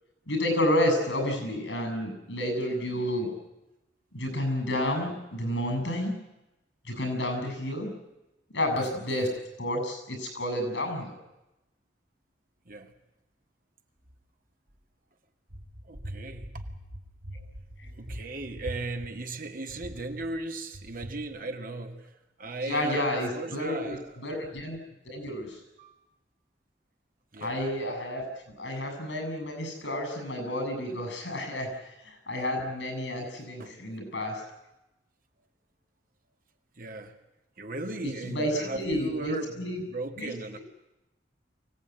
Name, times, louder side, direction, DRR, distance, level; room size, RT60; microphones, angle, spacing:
voice 1, 0.3-3.3 4.1-6.1 6.9-7.9 8.5-9.3 9.6-11.1 22.6-24.8 25.1-25.6 27.4-31.7 32.0-34.4 38.0-39.8 40.2-40.6, left 1 dB, 85° left, 6 dB, 7.5 m, -30 dB
voice 2, 15.5-17.4 17.9-22.1 22.4-24.2 25.8-25.9 27.3-27.6 33.6-33.7 36.8-37.1 37.6-40.6, right 2 dB, 50° right, 4 dB, 2.2 m, -37 dB
24.0 x 17.0 x 9.5 m, 0.98 s
head